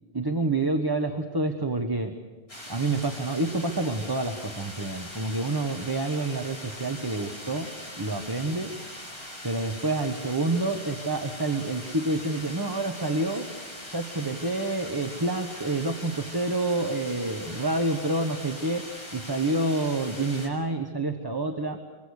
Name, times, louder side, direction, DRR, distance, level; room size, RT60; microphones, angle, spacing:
voice 1, 0.1-2.1 2.7-7.7 8.0-8.7 9.4-13.5 13.9-18.8 19.1-21.8, right 2 dB, 20° right, 4 dB, 1.4 m, -28 dB
sound 1, 2.5-20.5, left 1 dB, 75° left, 5.6 m, -41 dB
25.0 x 24.5 x 6.6 m, 1.4 s
omnidirectional pair, 1.1 m